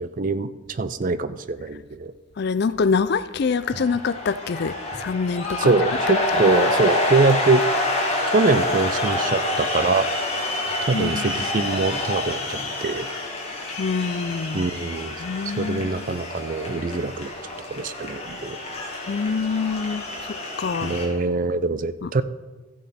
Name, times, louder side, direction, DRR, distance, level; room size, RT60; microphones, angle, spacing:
voice 1, 0.0-2.1 3.7-3.9 5.6-7.6 8.3-10.1 10.9-13.1 14.5-15.2 15.6-17.3 17.7-18.6 20.8-22.2, right 3 dB, 40° right, 0.4 m, -23 dB
voice 2, 2.4-5.7 10.9-11.3 13.8-14.7 15.2-16.1 19.1-20.9 22.0-22.1, left 5 dB, 50° left, 0.4 m, -25 dB
sound 1, 3.4-21.1, left 1 dB, 30° left, 2.1 m, -27 dB
14.0 x 8.3 x 4.3 m
head